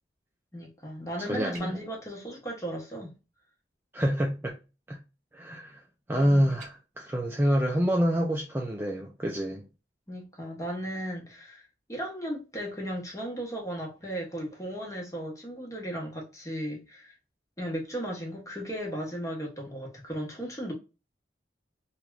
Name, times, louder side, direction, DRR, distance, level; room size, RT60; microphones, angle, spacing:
voice 1, 0.5-3.1 6.2-6.5 10.1-11.6 11.9-17.1 17.6-20.7, equal, 15° left, 1.0 m, -36 dB
voice 2, 1.2-1.8 3.9-4.6 4.9-5.0 5.3-5.8 6.1-9.7, equal, 10° right, 0.3 m, -27 dB
sound 1, 1.5-1.9 6.5-6.8, right 3 dB, 50° right, 0.9 m, -47 dB
3.3 x 2.3 x 2.2 m
head